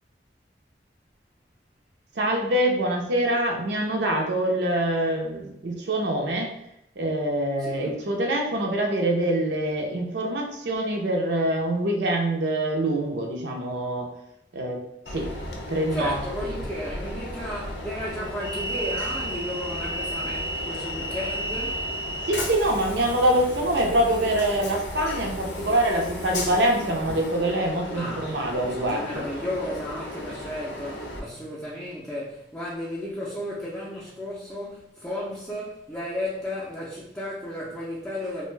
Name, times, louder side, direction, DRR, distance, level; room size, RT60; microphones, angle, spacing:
voice 1, 2.2-6.5 7.0-14.1 14.5-14.8 15.1-15.3 15.7-16.6 22.2-29.3, right 1 dB, 75° right, 0.6 m, -25 dB
voice 2, 7.6-7.9 15.9-21.9 28.0-38.5, left 1 dB, 5° left, 0.5 m, -34 dB
Train, 15.1-31.2, equal, 75° left, 0.6 m, -34 dB
2.5 x 2.2 x 3.1 m
head